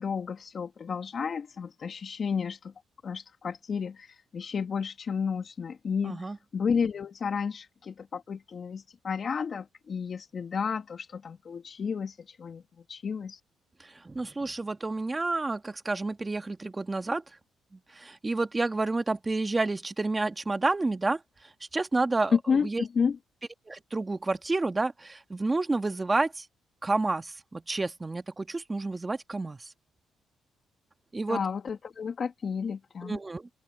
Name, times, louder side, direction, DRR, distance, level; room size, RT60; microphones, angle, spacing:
voice 1, 0.0-2.7 3.0-12.6 12.9-13.4 22.3-23.2 31.3-33.2, left 6 dB, 45° left, 2.4 m, -31 dB
voice 2, 6.0-6.4 13.8-17.2 17.7-22.4 22.6-22.8 23.7-26.5 26.8-29.7 31.1-31.4 33.0-33.5, right 3 dB, 20° right, 1.7 m, -30 dB
open air
cardioid pair, 90°, 0 cm